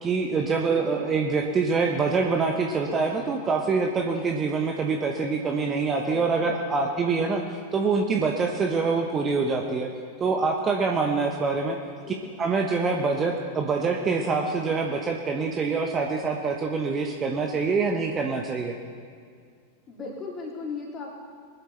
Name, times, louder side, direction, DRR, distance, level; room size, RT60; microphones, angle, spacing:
voice 1, 0.0-7.4 7.7-9.9 10.2-11.8 12.4-18.7, right 4 dB, 25° right, 2 dB, 1.1 m, -25 dB
voice 2, 0.7-1.0 6.0-7.0 11.8-12.3 19.9-21.2, left 4 dB, 25° left, -2 dB, 3.1 m, -38 dB
21.5 x 11.0 x 3.4 m, 2.1 s
figure-of-eight pair, 90°, 0 cm